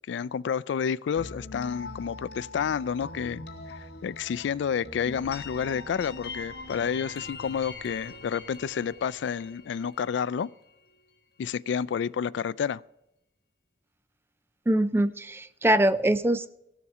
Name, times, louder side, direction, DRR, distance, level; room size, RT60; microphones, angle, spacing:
voice 1, 0.0-10.5 11.4-12.8, left 7 dB, 85° left, 0.3 m, -30 dB
sound 1, 1.2-10.9, left 3 dB, 65° left, 1.3 m, -43 dB
sound 2, 5.1-10.1, equal, 30° right, 1.7 m, -55 dB
voice 2, 14.7-16.5, right 1 dB, 15° right, 0.3 m, -23 dB
16.5 x 7.0 x 4.8 m
head